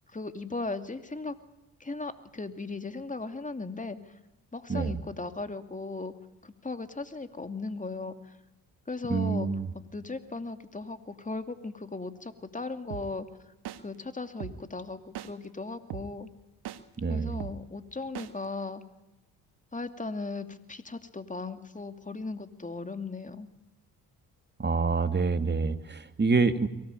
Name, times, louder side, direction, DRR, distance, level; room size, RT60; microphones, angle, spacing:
voice 1, 0.1-1.3 1.8-4.0 4.5-6.1 6.4-8.4 8.9-9.5 9.9-13.3 13.8-16.3 17.1-18.8 19.7-23.5, left 3 dB, 20° left, 8 dB, 2.6 m, -37 dB
voice 2, 9.1-9.7 17.0-17.4 24.6-26.7, right 4 dB, 25° right, 9 dB, 2.1 m, -27 dB
sound 1, 12.9-13.0 13.7-13.8 14.4-14.5 15.2-15.3 15.9-16.0 16.7-16.8 17.4-17.5 18.2-18.3, right 12 dB, 70° right, 1.7 m, -37 dB
23.5 x 18.5 x 9.1 m, 0.96 s
supercardioid pair, 60°, 40 cm